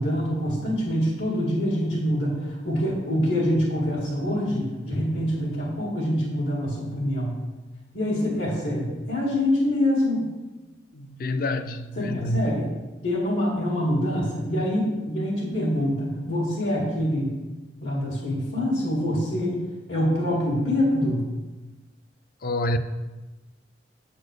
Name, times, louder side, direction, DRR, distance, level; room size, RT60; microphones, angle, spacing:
voice 1, 0.0-7.4 7.9-10.3 12.0-12.7 13.0-17.3 17.8-19.6 19.9-21.3, equal, 75° left, 2.1 m, -25 dB
voice 2, 10.9-12.4 22.4-22.8, left 1 dB, 50° left, 0.5 m, -27 dB
8.2 x 4.4 x 6.5 m
head